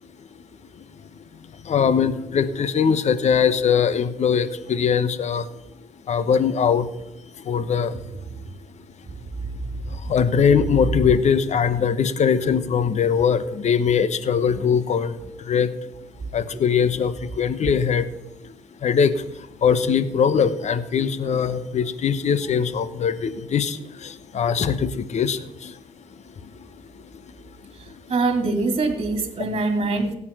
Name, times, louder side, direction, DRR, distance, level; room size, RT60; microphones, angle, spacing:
voice 1, 1.6-5.5 6.1-6.9 7.4-8.0 9.9-15.7 16.3-18.1 18.4-18.5 18.8-25.8 27.9-28.0, left 7 dB, 50° left, 13 dB, 1.2 m, -21 dB
voice 2, 28.1-30.1, right 3 dB, 40° right, 5 dB, 2.7 m, -23 dB
16.5 x 8.6 x 5.8 m, 0.88 s
hypercardioid pair, 55°, 15 cm